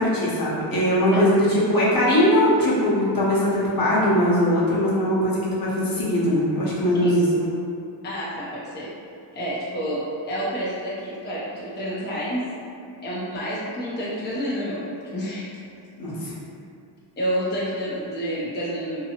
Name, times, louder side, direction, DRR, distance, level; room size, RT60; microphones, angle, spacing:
voice 1, 0.0-7.5 16.0-16.3, equal, 50° left, -7 dB, 0.9 m, -20 dB
voice 2, 8.0-8.9 9.3-10.0 10.3-12.5 13.0-14.8 15.1-15.5 16.2-16.4 17.2-19.0, equal, 25° left, -7 dB, 0.6 m, -29 dB
2.8 x 2.2 x 2.8 m, 2.4 s
cardioid pair, 60°, 45 cm